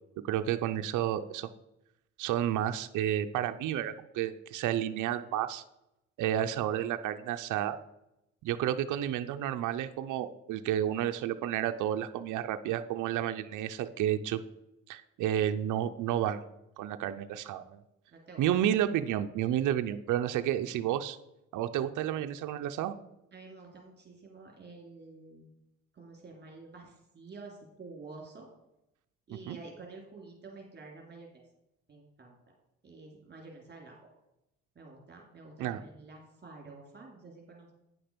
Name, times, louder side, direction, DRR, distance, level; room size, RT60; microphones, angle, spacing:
voice 1, 0.2-1.5 2.2-5.6 6.2-7.8 8.4-14.4 14.9-16.4 16.8-17.8 18.4-21.2 21.5-22.9 29.5-29.6 35.6-35.8, right 11 dB, 80° right, 8 dB, 0.6 m, -31 dB
voice 2, 18.1-18.5 23.3-25.5 25.9-28.5 29.3-31.4 31.9-32.5 32.8-34.0 34.7-37.7, right 3 dB, 35° right, 0 dB, 2.7 m, -49 dB
9.4 x 5.9 x 5.1 m, 0.87 s
cardioid pair, 90°, 30 cm